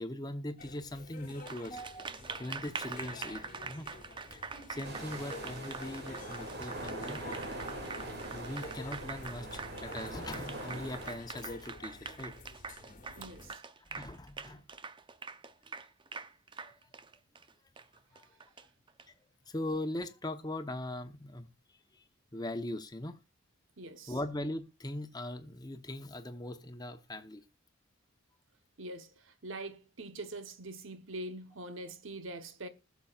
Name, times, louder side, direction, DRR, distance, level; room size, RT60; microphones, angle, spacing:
voice 1, 0.0-2.1 2.4-3.9 4.3-4.4 4.7-7.2 8.3-12.3 13.9-14.6 16.6-16.7 18.1-18.3 19.5-21.5 21.9-22.0 22.3-23.2 24.1-27.4, left 1 dB, 20° left, 0.9 m, -40 dB
sound 1, 0.6-13.5, left 3 dB, 40° left, 1.2 m, -51 dB
Applause, 1.3-19.0, right 4 dB, 25° right, 0.6 m, -44 dB
sound 2, 4.8-11.2, right 1 dB, 55° right, 2.6 m, -42 dB
voice 2, 13.2-13.6 23.8-24.2 28.8-32.7, right 2 dB, 70° right, 1.1 m, -43 dB
20.5 x 7.1 x 2.4 m
head